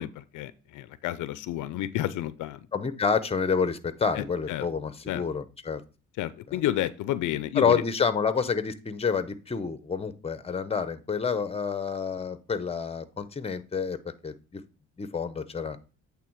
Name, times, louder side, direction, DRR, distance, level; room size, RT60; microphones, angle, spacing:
voice 1, 0.0-2.6 4.2-4.7 5.1-5.2 6.2-7.8, left 13 dB, 80° left, 16 dB, 0.5 m, -31 dB
voice 2, 2.7-5.8 6.5-6.6 7.6-14.6 15.0-15.8, left 5 dB, 20° left, 12 dB, 0.7 m, -28 dB
8.5 x 3.4 x 4.5 m, 0.32 s
cardioid pair, 90°, 30 cm